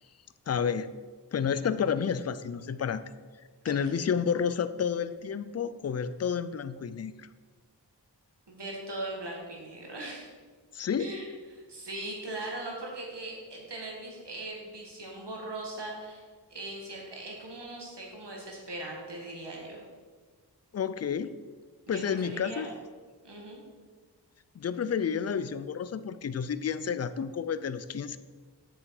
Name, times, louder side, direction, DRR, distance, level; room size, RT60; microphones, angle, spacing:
voice 1, 0.5-0.9 1.3-3.0 3.6-7.3 10.7-11.1 20.7-21.4 21.9-22.7 24.5-28.2, left 7 dB, 40° left, 13 dB, 0.4 m, -30 dB
voice 2, 8.5-10.3 11.0-11.2 11.5-16.2 16.5-19.8 21.9-22.7 23.2-23.6, right 2 dB, 70° right, -1 dB, 2.1 m, -40 dB
7.7 x 6.2 x 4.9 m, 1.5 s
wide cardioid pair, 80°, 42 cm